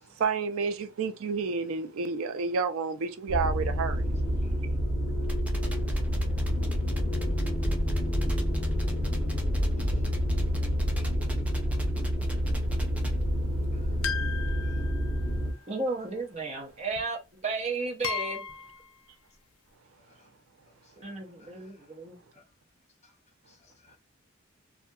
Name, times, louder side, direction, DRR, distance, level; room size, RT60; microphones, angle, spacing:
voice 1, 0.2-4.2, right 5 dB, 85° right, 0.4 m, -30 dB
sound 1, 3.3-15.5, equal, 15° left, 1.3 m, -28 dB
voice 2, 4.1-4.4 9.9-10.0 15.7-18.4 21.0-22.2, right 3 dB, 30° right, 0.7 m, -34 dB
sound 2, 5.2-13.2, equal, 5° right, 0.3 m, -36 dB
sound 3, 14.0-15.6 17.0-17.1 18.0-18.9, left 6 dB, 80° left, 0.4 m, -35 dB
voice 3, 20.0-20.3 20.7-21.8 22.3-22.4 23.0-23.1 23.5-24.0, left 3 dB, 30° left, 0.6 m, -63 dB
2.7 x 2.4 x 2.3 m
head